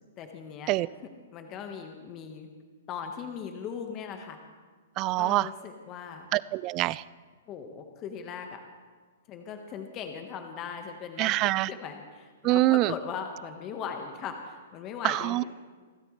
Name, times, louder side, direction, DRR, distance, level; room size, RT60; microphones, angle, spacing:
voice 1, 0.2-0.7 1.3-2.5 2.9-4.4 5.1-6.3 7.5-8.6 9.3-11.3 11.7-15.4, left 7 dB, 35° left, 5 dB, 1.4 m, -39 dB
voice 2, 5.0-5.5 6.3-7.0 11.2-11.7 12.4-12.9 15.0-15.4, right 18 dB, 35° right, 20 dB, 0.4 m, -25 dB
25.5 x 13.0 x 3.3 m, 1.5 s
hypercardioid pair, 120°, 0 cm